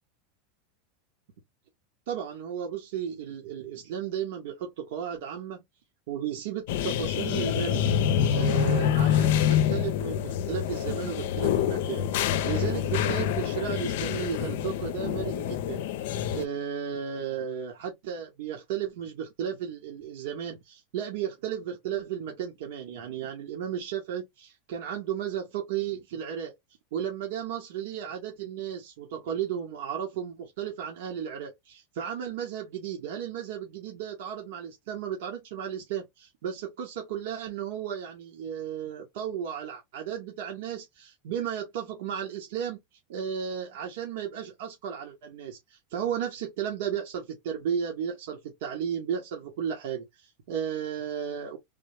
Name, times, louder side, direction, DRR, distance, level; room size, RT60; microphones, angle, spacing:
voice 1, 2.1-5.6 6.1-7.9 8.3-15.8 16.3-26.5 26.9-42.8 43.1-51.6, right 8 dB, 70° right, 1.3 m, -34 dB
sound 1, 6.7-16.4, left 9 dB, 70° left, 0.5 m, -26 dB
3.6 x 2.2 x 3.3 m
supercardioid pair, 145°, 0 cm